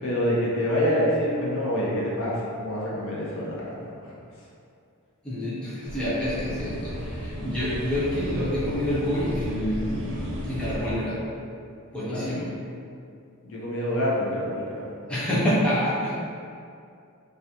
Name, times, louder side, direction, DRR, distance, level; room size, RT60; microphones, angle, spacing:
voice 1, 0.0-3.9 12.0-12.4 13.4-14.8, equal, 60° left, -6 dB, 0.5 m, -26 dB
voice 2, 5.2-11.2 11.9-12.5 15.1-16.1, left 1 dB, 5° left, -10 dB, 0.5 m, -27 dB
sound 1, 5.8-11.0, right 1 dB, 55° right, 0.4 m, -35 dB
2.3 x 2.1 x 2.7 m, 2.4 s
head